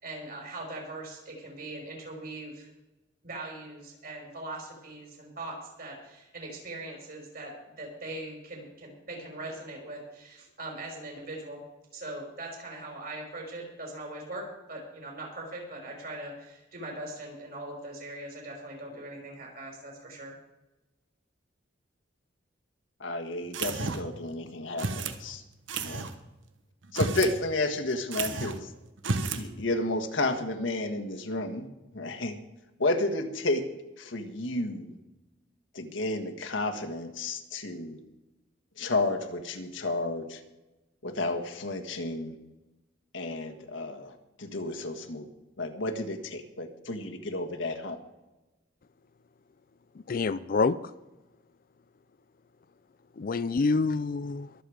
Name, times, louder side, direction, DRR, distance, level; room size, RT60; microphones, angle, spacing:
voice 1, 0.0-2.7 3.2-11.6 11.9-20.3, right 2 dB, 50° right, 0 dB, 5.2 m, -41 dB
voice 2, 23.0-25.4 25.8-26.1 26.9-28.7 29.3-31.7 31.9-32.4 32.8-33.6 34.0-35.0 35.7-38.0 38.8-40.4 41.0-42.3 43.1-44.1 44.4-45.3 45.6-48.0, left 2 dB, 75° left, 4 dB, 1.7 m, -31 dB
sound 1, 23.5-24.2 24.8-25.2 25.7-26.1 26.8-27.4 27.6-27.7 28.1-28.6 29.0-29.5, right 3 dB, 75° right, 1.2 m, -31 dB
voice 3, 50.1-50.8 53.2-54.5, left 4 dB, 45° left, 15 dB, 0.4 m, -26 dB
23.0 x 7.8 x 5.0 m, 1.0 s
head